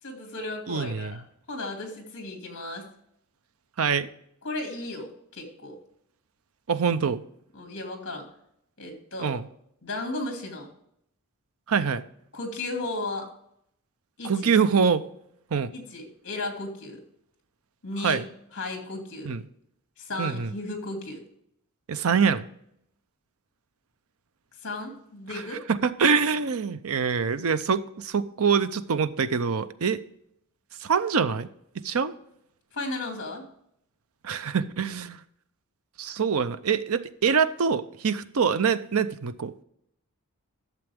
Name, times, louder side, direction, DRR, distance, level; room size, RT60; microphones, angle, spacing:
voice 1, 0.0-1.2 1.5-2.9 4.4-5.8 7.5-8.3 8.8-9.3 9.8-10.7 12.3-13.3 14.2-14.5 15.7-17.0 17.8-18.2 18.5-19.3 20.0-21.2 24.6-25.6 32.7-33.4, left 2 dB, 55° left, 2.5 m, -35 dB
voice 2, 0.7-1.1 3.8-4.1 6.7-7.2 9.2-9.5 11.7-12.0 14.2-15.0 15.5-15.7 18.0-18.2 19.2-19.4 20.2-20.5 21.9-22.4 25.7-30.0 30.8-31.5 31.8-32.1 34.2-35.2 36.0-39.5, right 6 dB, 70° right, 0.6 m, -24 dB
12.0 x 7.0 x 3.5 m
head